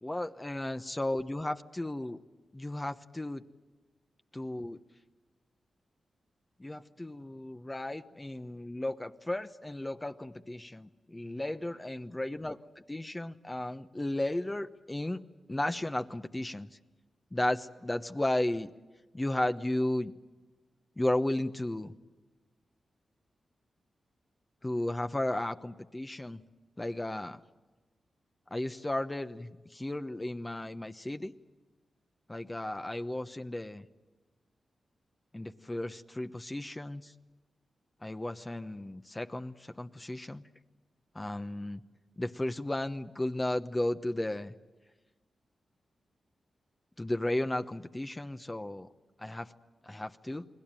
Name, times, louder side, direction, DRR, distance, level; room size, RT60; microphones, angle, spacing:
voice 1, 0.0-2.2 2.5-3.4 4.3-4.8 6.6-12.6 12.9-15.2 15.5-16.7 17.3-18.7 19.1-20.1 21.0-21.9 24.6-26.4 26.8-27.4 28.5-31.3 32.3-33.9 35.3-37.1 38.0-40.4 41.1-41.8 42.2-44.5 47.0-48.9 49.2-49.5 49.8-50.5, left 1 dB, 20° left, 7 dB, 1.0 m, -34 dB
29.5 x 20.5 x 9.0 m, 1.2 s
cardioid pair, 50°, 0 cm